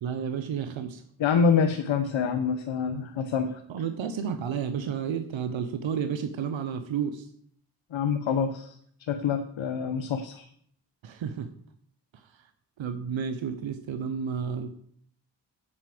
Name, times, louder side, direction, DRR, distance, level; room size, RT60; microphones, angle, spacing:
voice 1, 0.0-1.0 2.9-3.0 3.7-7.3 11.0-11.5 12.1-12.4 12.8-14.8, right 7 dB, 75° right, 9 dB, 1.0 m, -31 dB
voice 2, 1.2-3.6 7.9-8.7 9.1-10.4, left 6 dB, 75° left, 6 dB, 1.1 m, -26 dB
8.1 x 6.0 x 7.7 m, 0.65 s
cardioid pair, 55°, 46 cm